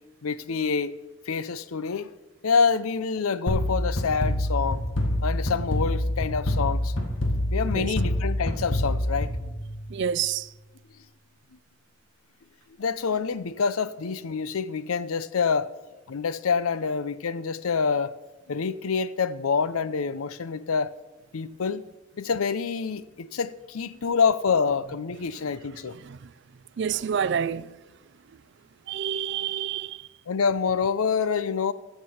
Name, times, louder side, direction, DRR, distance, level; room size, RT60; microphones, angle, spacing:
voice 1, 0.2-0.9 1.3-2.1 2.4-4.8 5.2-6.9 7.5-9.3 12.8-15.7 16.1-18.1 18.5-20.9 21.3-21.8 22.2-26.0 30.3-31.7, left 5 dB, 85° left, 0.6 m, -26 dB
sound 1, 3.5-10.1, left 1 dB, 60° left, 1.6 m, -26 dB
voice 2, 7.6-7.9 9.9-10.5 25.8-26.3 26.8-27.8 28.9-30.1, right 8 dB, 55° right, 0.4 m, -29 dB
14.5 x 6.8 x 5.7 m
head